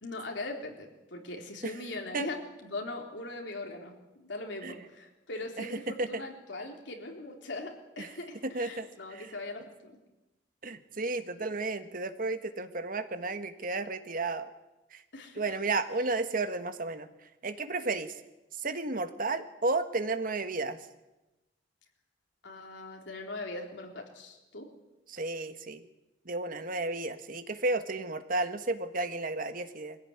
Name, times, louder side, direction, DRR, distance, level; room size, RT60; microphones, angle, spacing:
voice 1, 0.0-10.0 11.4-11.5 15.1-15.4 22.4-24.7, left 2 dB, 75° left, 2 dB, 3.8 m, -40 dB
voice 2, 8.5-9.3 10.6-14.5 14.9-15.0 15.4-17.1 17.4-18.1 18.6-20.8 25.1-25.8 26.2-30.0, right 3 dB, 50° right, 9 dB, 1.5 m, -33 dB
22.0 x 16.0 x 9.9 m, 1.0 s
head